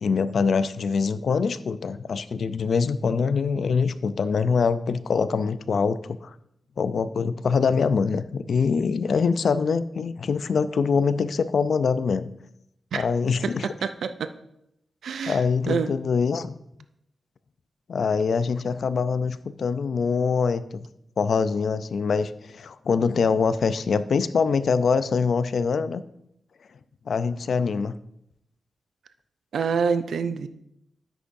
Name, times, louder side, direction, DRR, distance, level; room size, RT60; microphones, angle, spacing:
voice 1, 0.0-6.3 6.8-12.3 12.9-13.7 15.3-16.5 17.9-20.9 21.2-26.0 27.1-27.9, left 5 dB, 65° left, 14 dB, 0.4 m, -24 dB
voice 2, 13.8-14.3 15.0-15.4 15.7-15.9 29.5-30.5, right 6 dB, 85° right, 10 dB, 0.4 m, -26 dB
10.5 x 8.4 x 2.6 m, 0.81 s
wide cardioid pair, 130°, 0 cm